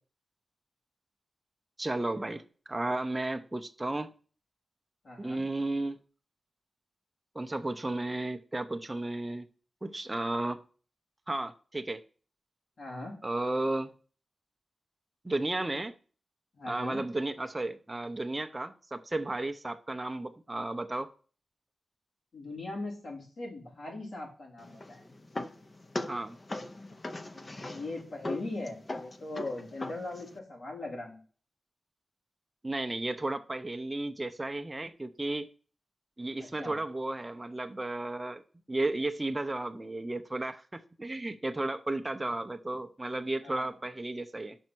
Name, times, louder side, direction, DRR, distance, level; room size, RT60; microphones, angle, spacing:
voice 1, 1.8-4.1 5.2-6.0 7.3-9.5 9.8-10.6 11.3-12.0 13.2-13.9 15.2-15.9 16.7-21.1 26.1-26.4 32.6-35.5 36.2-38.4 38.7-44.6, right 2 dB, 20° right, 0.5 m, -33 dB
voice 2, 5.0-5.4 12.8-13.1 16.5-17.0 22.3-25.1 27.4-31.2 36.4-36.8 43.4-43.7, left 2 dB, 70° left, 3.2 m, -40 dB
sound 1, 24.6-30.4, left 2 dB, 30° left, 0.7 m, -40 dB
5.4 x 5.3 x 6.0 m
wide cardioid pair, 105°, 0 cm